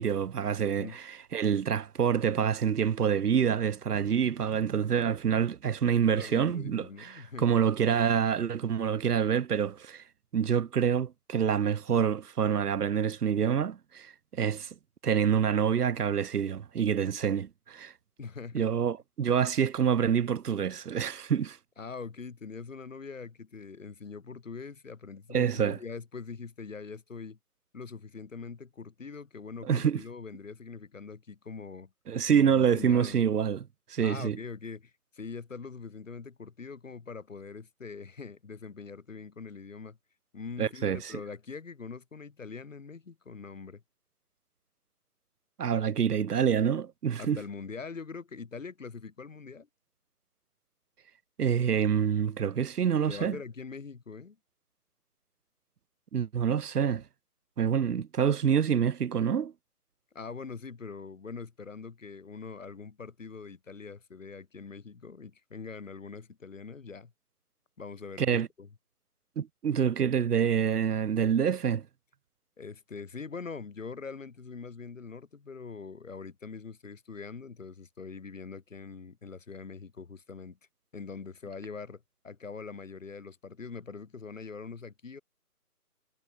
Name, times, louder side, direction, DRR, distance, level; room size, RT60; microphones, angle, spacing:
voice 1, 0.0-10.0 10.3-14.7 15.0-17.9 18.5-21.6 25.3-25.8 29.6-30.0 32.1-33.6 33.9-34.4 40.6-41.2 45.6-47.4 51.4-53.4 56.1-57.0 57.6-59.5 68.2-68.5 69.4-71.9, right 8 dB, 80° right, 0.7 m, -27 dB
voice 2, 6.0-7.6 18.2-18.7 21.8-27.4 27.7-31.9 32.3-33.4 34.0-40.0 40.3-43.8 45.8-45.9 47.2-49.7 53.1-54.4 60.1-67.1 67.8-68.7 72.6-80.6 80.9-85.2, left 5 dB, 55° left, 3.0 m, -43 dB
figure-of-eight pair, 155°, 46 cm